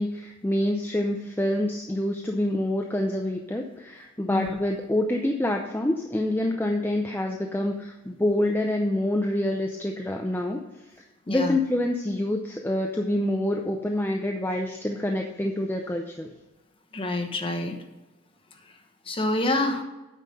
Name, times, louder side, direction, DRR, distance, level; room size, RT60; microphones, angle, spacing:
voice 1, 0.0-10.6 11.3-16.3, left 1 dB, 10° left, 2 dB, 0.5 m, -26 dB
voice 2, 11.3-11.6 16.9-17.7 19.0-19.8, left 2 dB, 25° left, 4 dB, 1.1 m, -27 dB
9.1 x 5.7 x 5.2 m, 1.1 s
head